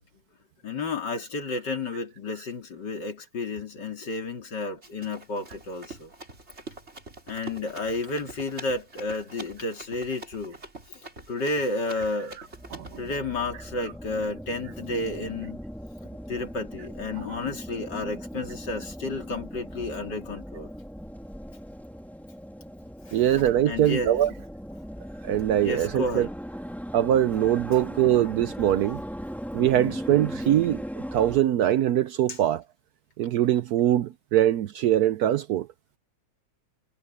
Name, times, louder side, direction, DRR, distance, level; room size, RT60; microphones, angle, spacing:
voice 1, 0.6-6.1 7.3-10.6 11.3-12.4 13.0-15.6 16.3-20.7 23.1-23.2 23.7-24.1 25.6-26.3, left 2 dB, 70° left, 3.5 m, -31 dB
Run, 4.8-13.2, right 2 dB, 35° right, 4.3 m, -45 dB
sound 1, 12.4-31.4, equal, ahead, 3.2 m, -39 dB
voice 2, 12.7-13.1 23.1-24.3 25.2-26.3 26.9-29.0 29.5-32.6 33.2-35.7, right 11 dB, 70° right, 1.0 m, -23 dB
omnidirectional pair, 2.0 m